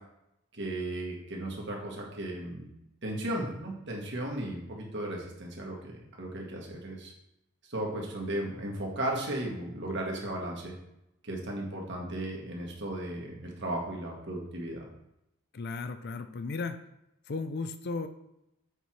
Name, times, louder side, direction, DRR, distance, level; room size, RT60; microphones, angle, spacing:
voice 1, 0.6-2.7 3.0-7.1 7.7-10.7 11.2-14.9, right 1 dB, 55° right, -1 dB, 1.7 m, -35 dB
voice 2, 15.5-16.8 17.3-18.1, left 4 dB, 50° left, 9 dB, 0.5 m, -35 dB
6.8 x 4.5 x 4.7 m, 0.84 s
head